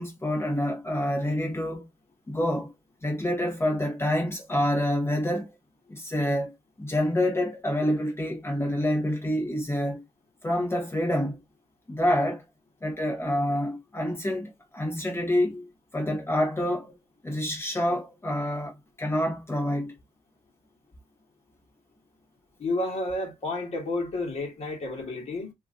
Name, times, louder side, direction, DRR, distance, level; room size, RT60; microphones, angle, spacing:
voice 1, 0.0-1.8 2.3-2.7 3.0-5.5 5.9-10.0 10.4-11.4 11.9-12.4 12.8-15.7 15.9-16.9 17.2-19.9, left 1 dB, 15° left, 1.1 m, -27 dB
voice 2, 22.6-25.5, left 2 dB, 45° left, 1.5 m, -31 dB
3.0 x 2.5 x 3.7 m
wide cardioid pair, 155°, 15 cm